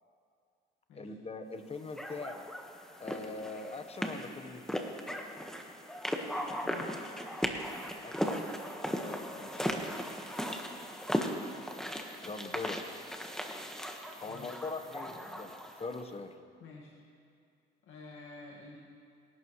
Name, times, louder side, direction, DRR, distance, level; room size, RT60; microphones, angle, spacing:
voice 1, 0.9-2.5 3.0-4.6 8.0-8.5 9.0-9.7 12.2-13.0 14.2-16.3, left 3 dB, 30° left, 7 dB, 1.2 m, -42 dB
sound 1, 2.0-16.0, equal, 5° left, 1.4 m, -37 dB
voice 2, 6.5-7.1 14.3-14.6 16.6-17.0 17.8-18.8, left 3 dB, 80° left, -3 dB, 1.9 m, -49 dB
25.5 x 11.5 x 3.2 m, 2.3 s
cardioid pair, 90°, 20 cm